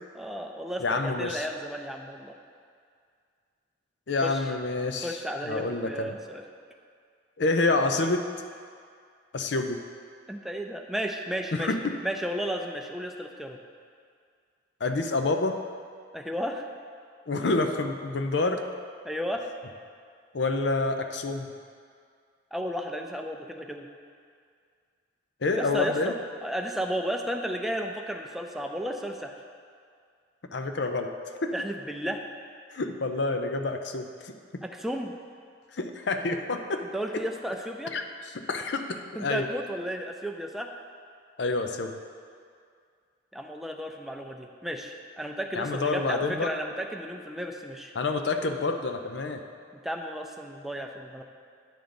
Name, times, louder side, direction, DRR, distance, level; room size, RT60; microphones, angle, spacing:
voice 1, 0.1-2.4 4.2-4.4 5.0-6.4 10.3-11.7 12.0-13.6 16.1-16.7 19.0-19.5 22.5-23.9 25.6-26.1 26.4-29.3 31.5-32.2 34.6-35.2 36.9-37.9 39.1-40.7 43.3-47.9 49.7-51.2, equal, ahead, 2 dB, 0.5 m, -33 dB
voice 2, 0.8-1.5 4.1-5.2 5.5-6.2 7.4-8.2 9.3-9.8 11.5-11.9 14.8-15.6 17.3-18.6 20.3-21.5 25.4-26.1 30.5-31.1 31.4-31.5 32.7-34.3 35.7-36.8 37.9-38.0 38.3-39.5 41.4-41.9 45.5-46.5 47.9-49.4, left 3 dB, 70° left, 6 dB, 0.6 m, -28 dB
9.3 x 3.8 x 7.0 m, 2.2 s
head